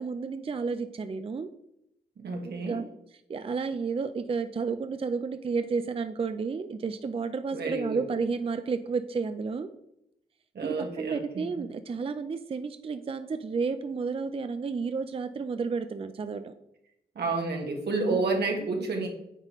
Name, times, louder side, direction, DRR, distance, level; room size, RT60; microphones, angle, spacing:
voice 1, 0.0-1.5 2.4-2.8 3.3-9.7 10.6-16.5 18.1-18.2 18.6-18.9, right 5 dB, 35° right, 9 dB, 0.4 m, -31 dB
voice 2, 2.2-2.8 7.5-8.0 10.5-11.6 17.1-19.1, right 3 dB, 80° right, 2 dB, 1.4 m, -30 dB
8.9 x 4.1 x 3.0 m, 0.81 s
cardioid pair, 70°, 17 cm